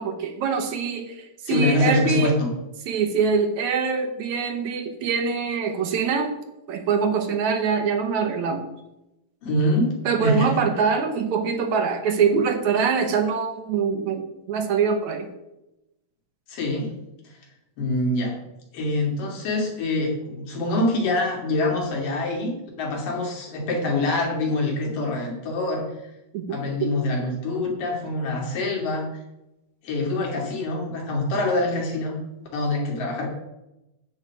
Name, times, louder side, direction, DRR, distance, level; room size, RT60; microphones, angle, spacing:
voice 1, 0.0-2.4 2.9-6.4 6.7-8.7 10.1-15.3 26.3-26.9, right 5 dB, 70° right, 5 dB, 2.2 m, -24 dB
voice 2, 1.5-2.5 9.4-9.9 10.2-10.5 16.5-16.9 17.8-18.4 18.7-25.8 26.5-29.1 29.8-32.2 32.5-33.3, left 2 dB, 80° left, -1 dB, 4.1 m, -25 dB
9.9 x 8.2 x 4.8 m, 0.91 s
omnidirectional pair, 3.8 m